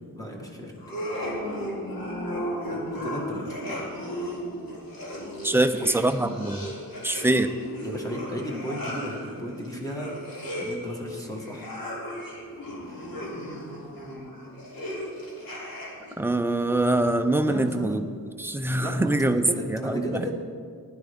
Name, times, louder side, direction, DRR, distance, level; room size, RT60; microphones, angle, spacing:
voice 1, 0.1-0.7 2.7-3.8 7.8-10.1 10.5-11.7 12.8-13.1 17.5-17.9 18.8-20.3, equal, 10° left, 0 dB, 1.4 m, -35 dB
sound 1, 0.8-16.2, equal, 75° left, 3.1 m, -35 dB
voice 2, 5.4-6.7 7.0-7.5 16.2-18.1 18.4-20.3, right 1 dB, 5° right, 7 dB, 0.3 m, -24 dB
15.5 x 11.5 x 3.5 m, 2.2 s
wide cardioid pair, 170°, 35 cm